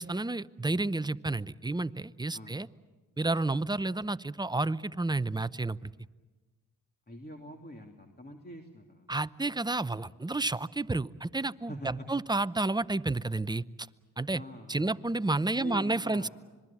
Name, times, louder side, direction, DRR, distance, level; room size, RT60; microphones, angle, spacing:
voice 1, 0.0-2.7 3.2-5.9 9.1-13.6 14.2-14.4 14.7-16.3, right 2 dB, 10° right, 15 dB, 0.7 m, -30 dB
voice 2, 7.1-9.1 11.7-12.1 14.3-15.0 15.5-16.3, equal, 25° left, 2 dB, 2.8 m, -44 dB
26.0 x 22.0 x 7.3 m, 1.3 s
supercardioid pair, 50°, 41 cm